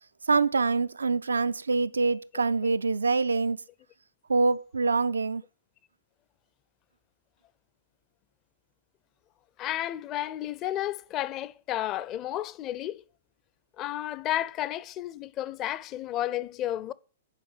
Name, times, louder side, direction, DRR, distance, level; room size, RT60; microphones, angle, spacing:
voice 1, 0.3-3.6 4.3-5.4, right 4 dB, 85° right, 0.4 m, -25 dB
voice 2, 9.6-13.0 13.8-16.9, left 13 dB, 30° left, 0.6 m, -32 dB
9.6 x 4.9 x 7.3 m
hypercardioid pair, 115°, 0 cm